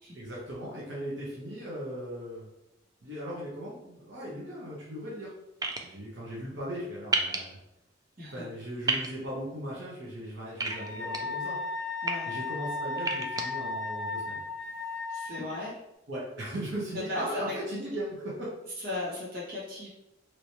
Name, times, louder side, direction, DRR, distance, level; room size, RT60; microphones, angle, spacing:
voice 1, 0.1-2.5 3.0-5.3 5.8-7.6 8.3-11.6 12.3-14.4 16.1-18.5, equal, 85° right, -7 dB, 1.0 m, -38 dB
sound 1, 5.6-5.8 7.1-7.4 8.9-9.1 10.6-11.2 11.8-12.1 13.0-13.4, right 3 dB, 20° right, 0.3 m, -29 dB
Wind instrument woodwind instrument, 10.7-15.6, left 3 dB, 65° left, 0.5 m, -35 dB
voice 2, 12.0-12.3 15.1-15.8 17.1-17.5 18.8-19.9, left 2 dB, 55° right, -7 dB, 1.5 m, -36 dB
3.1 x 3.0 x 2.8 m, 0.88 s
head